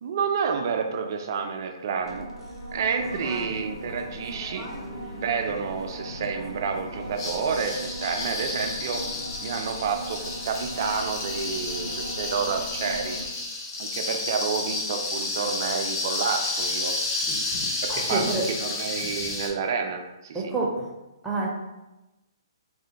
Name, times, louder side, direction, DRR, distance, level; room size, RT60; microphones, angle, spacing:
voice 1, 0.0-2.3 2.7-4.7 5.1-9.0 9.4-10.2 10.4-13.2 13.8-16.9 17.8-20.5, right 6 dB, 50° right, 4 dB, 0.4 m, -29 dB
sound 1, 2.0-13.3, right 1 dB, 80° left, 0.8 m, -39 dB
sound 2, 3.0-8.3, equal, 25° left, 1.1 m, -44 dB
sound 3, 7.2-19.5, left 2 dB, 40° left, 0.7 m, -31 dB
voice 2, 17.9-18.4 20.3-20.9 21.2-21.5, right 3 dB, 5° right, -4 dB, 0.7 m, -28 dB
4.1 x 2.2 x 2.8 m, 1.0 s
figure-of-eight pair, 130°, 3 cm